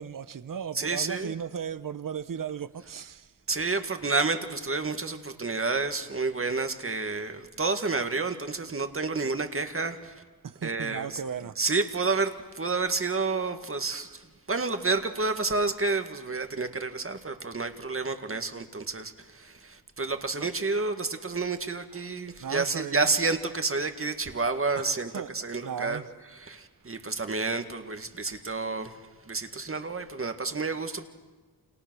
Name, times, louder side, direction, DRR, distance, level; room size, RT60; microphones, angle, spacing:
voice 1, 0.0-3.3 10.4-11.6 13.9-14.0 20.4-20.5 21.9-22.0 22.4-23.1 24.8-25.3 25.6-26.1 28.3-28.4, right 8 dB, 55° right, 1.0 m, -36 dB
voice 2, 0.7-1.3 3.5-10.2 10.6-11.2 11.6-14.2 14.5-26.0 26.4-29.0 29.3-31.1, right 3 dB, 35° right, 1.9 m, -30 dB
29.5 x 28.5 x 6.3 m
wide cardioid pair, 105°, 38 cm